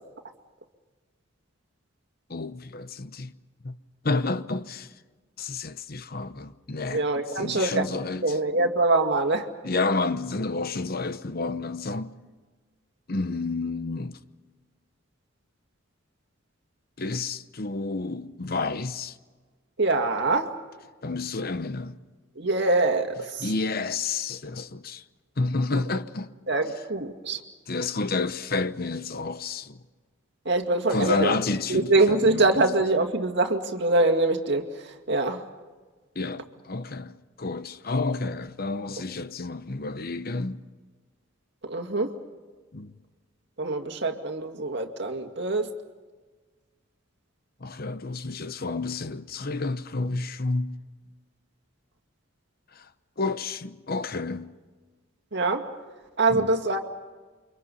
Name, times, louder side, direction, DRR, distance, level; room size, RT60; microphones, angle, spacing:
voice 1, 2.3-3.3 3.6-3.8 4.0-4.9 5.4-7.0 7.3-8.4 9.6-12.1 13.1-14.2 17.0-19.2 21.0-22.0 23.4-25.0 25.4-26.3 27.7-29.8 30.9-32.5 36.1-40.6 42.7-42.9 47.6-50.8 52.7-52.9 53.2-54.5 56.3-56.5, left 3 dB, 50° left, 0.9 m, -30 dB
voice 2, 6.9-7.9 8.2-9.5 19.8-20.5 22.4-23.5 25.7-25.8 26.5-27.4 30.5-31.4 31.7-34.7 35.1-35.4 41.6-42.1 43.6-45.7 55.3-55.6 56.2-56.8, right 2 dB, 60° right, 2.3 m, -24 dB
29.5 x 25.5 x 5.6 m
head